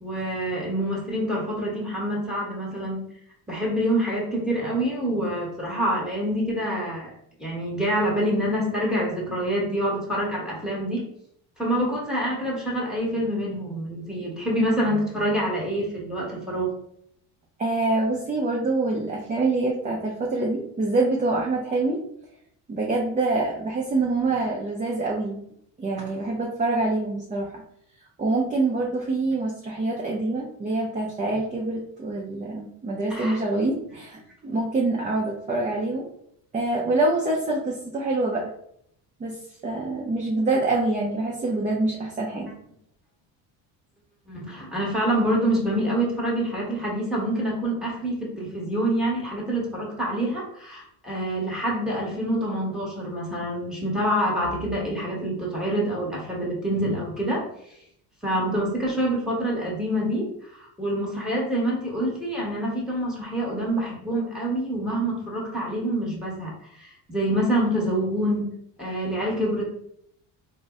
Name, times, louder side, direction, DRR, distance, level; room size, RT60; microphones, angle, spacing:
voice 1, 0.0-3.0 3.5-7.1 7.4-11.0 11.6-16.7 33.1-33.4 44.3-57.5 58.2-66.5 66.8-68.5 68.8-69.6, right 1 dB, ahead, -3 dB, 1.1 m, -26 dB
voice 2, 17.6-22.0 22.7-25.4 25.8-27.6 28.2-36.1 36.5-38.4 39.2-42.5, right 2 dB, 20° right, -2 dB, 0.4 m, -25 dB
3.8 x 2.1 x 3.5 m, 0.71 s
cardioid pair, 125°, 44 cm